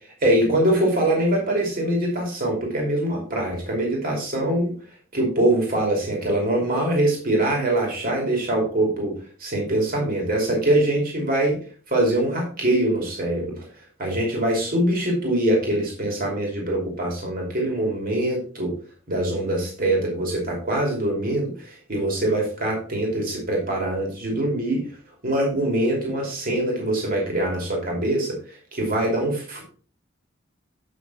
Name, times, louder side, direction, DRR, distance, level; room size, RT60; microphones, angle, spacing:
voice 1, 0.2-4.7 5.1-11.6 11.9-13.6 14.0-18.7 19.1-24.8 25.2-29.6, right 1 dB, 45° right, 0 dB, 2.9 m, -23 dB
8.6 x 5.8 x 4.1 m, 0.40 s
head